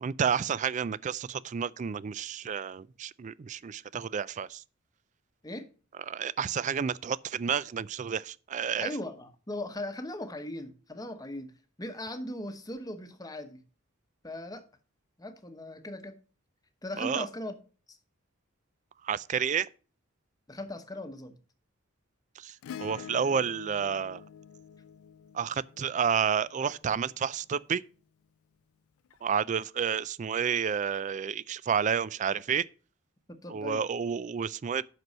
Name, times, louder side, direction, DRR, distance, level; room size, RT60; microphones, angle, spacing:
voice 1, 0.0-4.6 6.1-8.9 17.0-17.3 19.0-19.7 22.4-24.2 25.3-27.8 29.2-32.7 33.5-34.8, right 7 dB, 35° right, 0.3 m, -30 dB
voice 2, 8.8-13.6 14.2-14.6 15.2-16.2 16.8-17.5 17.9-18.0 20.5-21.4 33.3-33.8, left 1 dB, 20° left, 1.0 m, -39 dB
Acoustic guitar / Strum, 22.6-27.2 29.1-29.2, left 8 dB, 85° left, 0.3 m, -46 dB
7.9 x 6.1 x 5.4 m
head